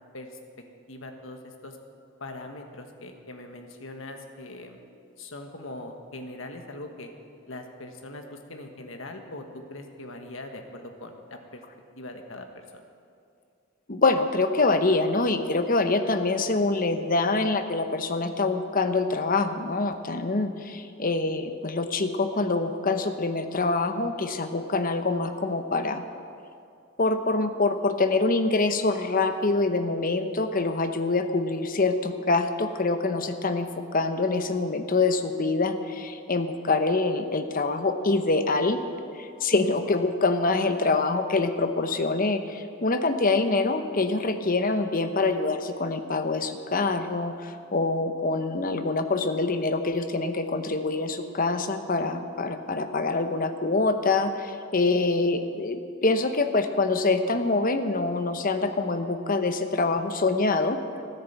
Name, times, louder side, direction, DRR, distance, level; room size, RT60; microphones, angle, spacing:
voice 1, 0.9-1.8 2.2-4.8 5.2-7.1 7.5-11.6 12.0-12.8, left 2 dB, 65° left, 4 dB, 1.5 m, -41 dB
voice 2, 13.9-26.0 27.0-33.7 33.9-38.8 39.1-55.8 56.0-60.8, left 3 dB, 40° left, 8 dB, 0.9 m, -25 dB
14.0 x 10.5 x 8.1 m, 2.4 s
head